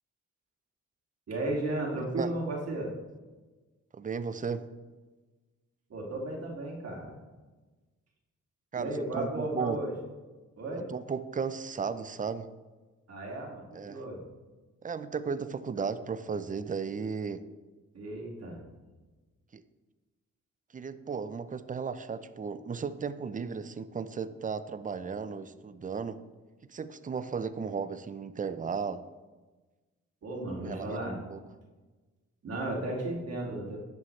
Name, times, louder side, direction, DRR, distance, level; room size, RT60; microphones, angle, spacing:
voice 1, 1.3-2.9 5.9-7.2 8.7-9.9 10.6-10.9 13.1-14.2 17.9-18.6 30.2-31.2 32.4-33.8, right 2 dB, 55° right, -2 dB, 2.5 m, -34 dB
voice 2, 3.9-4.7 8.7-9.8 10.9-12.5 13.7-14.0 14.8-17.4 19.5-19.6 20.7-26.2 26.7-29.0 30.3-30.9 31.3-31.4, right 5 dB, 25° right, 14 dB, 0.5 m, -35 dB
11.0 x 7.0 x 3.2 m, 1.3 s
cardioid pair, 70°, 30 cm